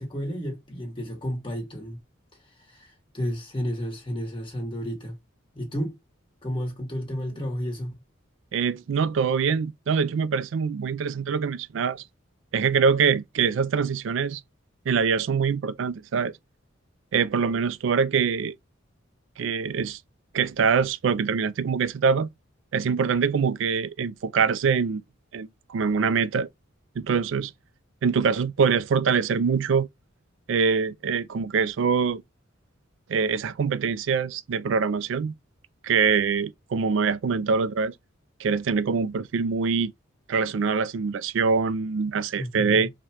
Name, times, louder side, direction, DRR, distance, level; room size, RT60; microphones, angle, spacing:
voice 1, 0.0-2.0 2.7-5.2 5.5-6.0 6.4-7.9 42.4-42.9, equal, 25° left, 1.4 m, -32 dB
voice 2, 8.5-12.0 12.5-14.4 14.9-16.3 17.1-18.5 19.4-20.0 20.3-22.3 22.7-25.0 25.3-26.5 27.0-27.5 28.0-29.9 30.5-32.2 33.1-35.3 35.8-37.9 38.4-39.9 40.3-42.9, right 5 dB, 65° right, 0.4 m, -24 dB
4.6 x 2.2 x 2.8 m
head